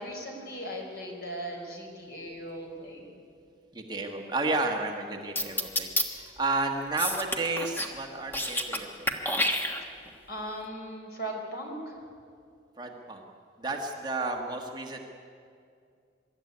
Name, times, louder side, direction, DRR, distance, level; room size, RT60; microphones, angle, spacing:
voice 1, 0.0-3.1 6.2-6.3 9.8-9.9 10.3-12.0, right 1 dB, 55° left, 1 dB, 4.5 m, -38 dB
voice 2, 3.7-9.1 12.8-13.2 13.6-15.0, right 3 dB, 25° right, 2 dB, 1.6 m, -32 dB
sound 1, 5.4-6.0 7.0-7.9 8.2-8.8 9.1-10.1, left 1 dB, 10° left, 1.3 m, -28 dB
24.0 x 13.0 x 9.8 m, 2.4 s
head